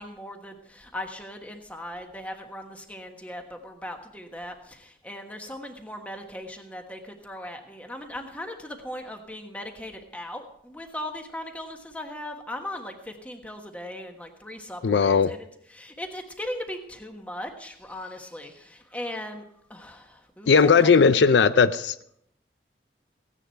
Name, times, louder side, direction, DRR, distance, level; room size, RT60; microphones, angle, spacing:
voice 1, 0.0-15.4 15.7-19.4 19.7-20.9, left 1 dB, 10° left, 1.3 m, -38 dB
voice 2, 14.8-15.3 20.5-22.0, left 5 dB, 85° left, 0.5 m, -18 dB
16.0 x 10.0 x 4.5 m
head